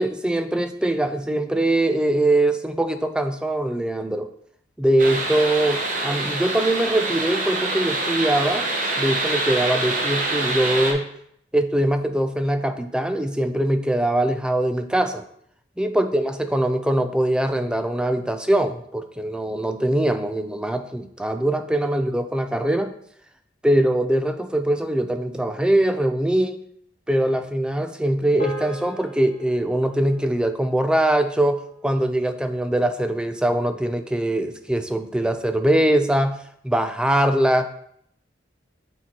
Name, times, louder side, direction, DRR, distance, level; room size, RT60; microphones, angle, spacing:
voice 1, 0.0-4.3 4.8-8.7 9.0-11.1 11.5-15.2 15.8-22.9 23.6-26.6 27.1-36.4 36.6-37.7, right 1 dB, 5° right, 8 dB, 0.4 m, -22 dB
sound 1, 5.0-10.9, right 2 dB, 45° right, 1.0 m, -25 dB
sound 2, 28.4-32.9, equal, 55° left, 1.3 m, -39 dB
8.1 x 4.5 x 2.9 m, 0.68 s
head